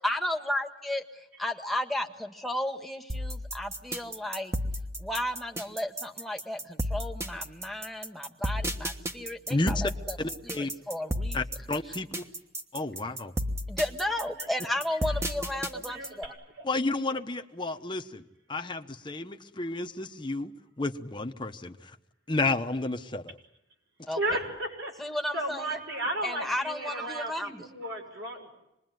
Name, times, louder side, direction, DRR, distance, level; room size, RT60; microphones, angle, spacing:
voice 1, 0.0-4.5 5.0-10.2 10.4-11.4 13.7-16.3 24.1-24.4 25.0-25.8 26.2-27.7, left 1 dB, ahead, 3 dB, 1.5 m, -33 dB
sound 1, 3.1-16.2, equal, 15° right, 1.3 m, -33 dB
voice 2, 9.5-9.8 10.2-10.7 11.3-12.2 12.7-13.3 16.6-18.2 18.5-20.5 20.8-22.0 22.3-23.4, left 2 dB, 25° left, 6 dB, 1.1 m, -31 dB
voice 3, 15.7-16.6 24.2-24.9 25.3-28.5, right 1 dB, 75° right, 3 dB, 6.6 m, -34 dB
26.5 x 21.5 x 9.3 m, 0.85 s
head